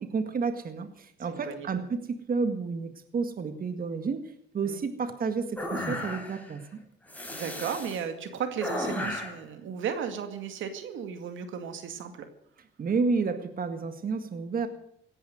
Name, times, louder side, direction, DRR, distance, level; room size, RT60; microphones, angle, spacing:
voice 1, 0.0-2.0 2.3-4.2 4.5-6.6 12.8-14.7, right 4 dB, 45° right, 8 dB, 1.8 m, -30 dB
voice 2, 1.3-1.7 4.6-4.8 7.3-12.3, right 7 dB, 80° right, 7 dB, 2.2 m, -35 dB
sound 1, 5.6-6.5 7.1-8.0 8.6-9.4, left 1 dB, 5° left, 4.8 m, -34 dB
17.5 x 10.5 x 7.7 m, 0.68 s
cardioid pair, 90°, 20 cm